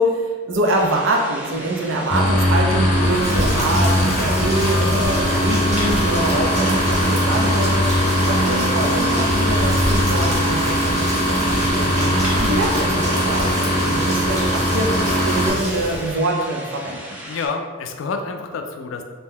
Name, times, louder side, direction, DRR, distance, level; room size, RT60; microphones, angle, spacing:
voice 1, 0.0-7.9 8.3-12.1 12.4-17.2, right 1 dB, 70° right, 1 dB, 0.5 m, -24 dB
sound 1, 0.7-17.5, equal, 10° right, 0.4 m, -37 dB
sound 2, 2.1-15.5, equal, 35° left, 0.6 m, -20 dB
Rain, 3.0-16.2, equal, 35° right, 0.8 m, -27 dB
voice 2, 17.3-19.0, left 4 dB, 70° left, 5 dB, 0.3 m, -28 dB
2.7 x 2.2 x 3.5 m, 1.4 s
head